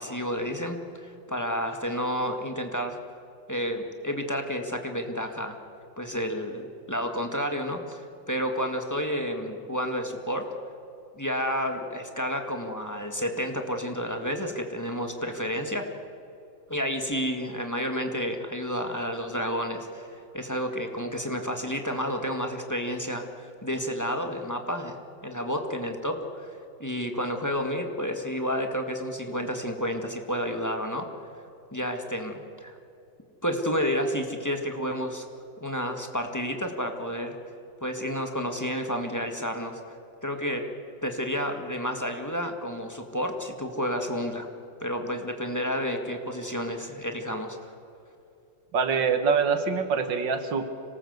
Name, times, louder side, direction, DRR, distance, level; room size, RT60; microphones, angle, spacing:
voice 1, 0.0-3.0 3.5-5.6 6.0-8.0 8.3-10.5 11.2-15.9 16.7-25.0 25.2-31.1 31.7-32.8 33.4-35.3 35.6-37.4 37.8-39.8 40.2-40.6 41.0-44.5 44.8-47.7, equal, 10° left, 4 dB, 1.8 m, -30 dB
voice 2, 48.7-50.6, right 5 dB, 80° right, 9 dB, 2.1 m, -24 dB
26.0 x 18.5 x 8.1 m, 2.7 s
omnidirectional pair, 2.0 m